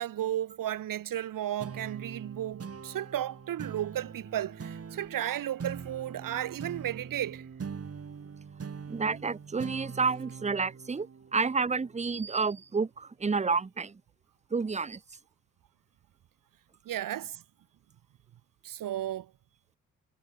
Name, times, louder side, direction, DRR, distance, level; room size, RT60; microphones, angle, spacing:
voice 1, 0.0-7.5 16.9-17.4 18.6-19.3, right 12 dB, 90° right, 2.1 m, -34 dB
sound 1, 1.6-12.4, right 6 dB, 45° right, 6.9 m, -43 dB
voice 2, 8.9-11.1 11.3-14.0 14.5-15.0, right 4 dB, 20° right, 0.9 m, -30 dB
cardioid pair, 100°, 32 cm